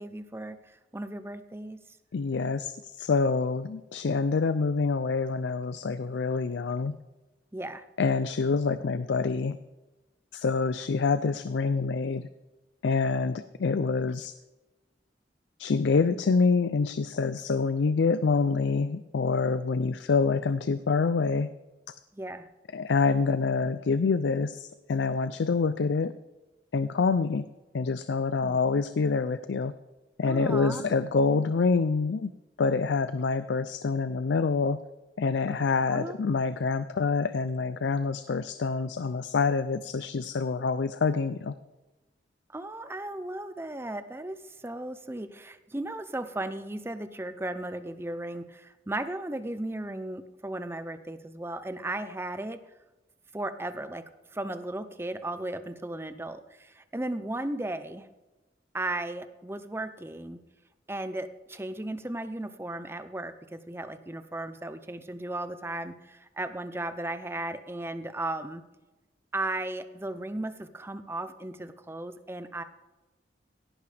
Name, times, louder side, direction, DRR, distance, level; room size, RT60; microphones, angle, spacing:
voice 1, 0.0-1.8 7.5-7.8 22.1-22.5 28.4-28.6 30.2-30.8 35.9-36.2 42.5-52.6 53.3-54.0 54.3-58.1 58.7-60.4 60.9-68.6 69.3-72.6, right 1 dB, 15° right, 10 dB, 0.6 m, -36 dB
voice 2, 2.1-7.0 8.0-9.6 10.3-12.3 12.8-14.3 15.6-21.5 22.7-26.1 26.7-27.5 27.7-29.7 30.2-32.3 32.6-34.8 35.2-41.6, left 4 dB, 80° left, 13 dB, 0.4 m, -26 dB
17.0 x 10.5 x 3.4 m, 1.1 s
head